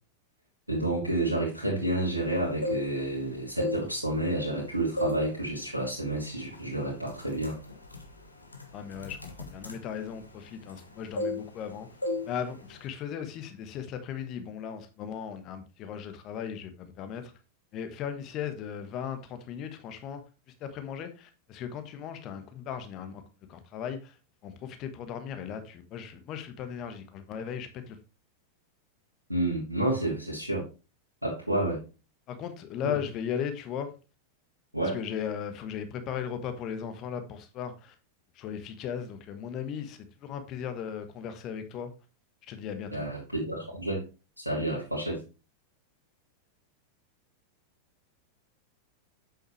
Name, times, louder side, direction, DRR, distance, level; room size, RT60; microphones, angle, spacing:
voice 1, 0.7-7.6 29.3-30.7 31.2-31.8 32.8-32.9 34.7-35.0 42.9-44.0 44.4-45.2, right 1 dB, 90° right, 2.5 m, -30 dB
sound 1, 2.4-3.2 3.5-4.6 5.0-5.3 5.7-5.9 6.5-6.7 7.0-10.9 11.2-11.7 12.0-12.3 12.6-12.8, left 2 dB, 85° left, 1.5 m, -34 dB
voice 2, 8.7-11.9 12.2-17.3 17.7-20.2 20.6-23.2 23.5-24.1 24.4-28.0 32.3-33.9 34.9-37.9 38.3-41.9 42.5-43.1, left 8 dB, 35° left, 1.2 m, -37 dB
8.2 x 6.5 x 3.2 m
figure-of-eight pair, 90°, 0 cm